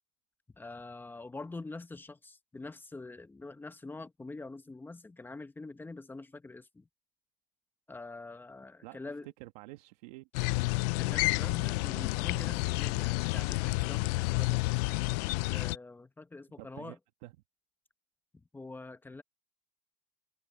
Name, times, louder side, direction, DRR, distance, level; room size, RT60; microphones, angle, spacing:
voice 1, 0.6-6.9 7.9-9.3 11.0-14.6 15.5-17.0 18.5-19.2, left 3 dB, 10° left, 1.1 m, -45 dB
voice 2, 8.8-10.3 16.6-17.3, right 19 dB, 75° right, 1.5 m, -49 dB
sound 1, 10.3-15.8, left 24 dB, 75° left, 0.4 m, -30 dB
supercardioid pair, 135°, 21 cm